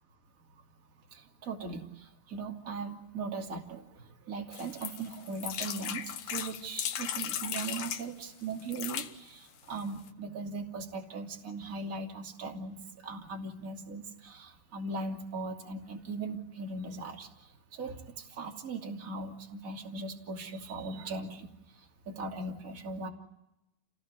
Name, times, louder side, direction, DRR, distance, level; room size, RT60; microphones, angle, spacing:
voice 1, 1.1-21.5 21.7-23.1, right 3 dB, 25° right, 2 dB, 2.7 m, -39 dB
sound 1, 4.5-8.1 8.6-9.1 9.8-9.9 10.1-10.2, left 9 dB, 65° left, 1.8 m, -36 dB
28.0 x 19.5 x 9.7 m, 0.90 s
omnidirectional pair, 4.2 m